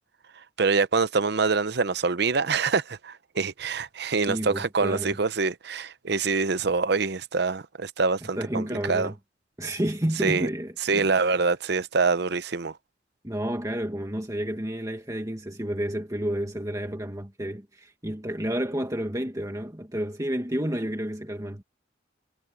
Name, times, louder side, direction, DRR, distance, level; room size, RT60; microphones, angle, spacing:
voice 1, 0.6-9.1 10.2-10.5 10.8-12.8, right 4 dB, 60° right, 0.8 m, -25 dB
voice 2, 4.3-5.2 8.4-9.2 9.6-11.3 13.2-21.6, right 1 dB, 20° right, 1.8 m, -30 dB
head